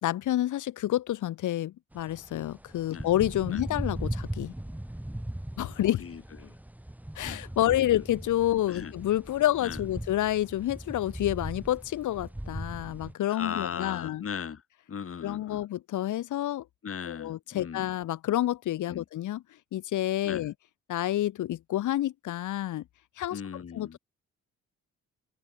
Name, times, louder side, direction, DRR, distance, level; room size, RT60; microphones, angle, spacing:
voice 1, 0.0-4.5 5.6-6.0 7.1-14.2 15.2-16.6 17.0-19.4 19.7-20.5 20.9-22.8 23.2-23.4 23.7-24.0, left 13 dB, 80° left, 3.1 m, -29 dB
sound 1, 1.9-13.1, right 1 dB, 5° right, 4.2 m, -39 dB
voice 2, 5.8-6.5 7.2-8.0 8.7-8.9 9.6-9.8 13.3-14.6 14.9-15.6 16.8-17.9 18.9-19.0 20.2-20.4 23.3-24.0, left 7 dB, 45° left, 5.9 m, -38 dB
open air
cardioid pair, 90°, 30 cm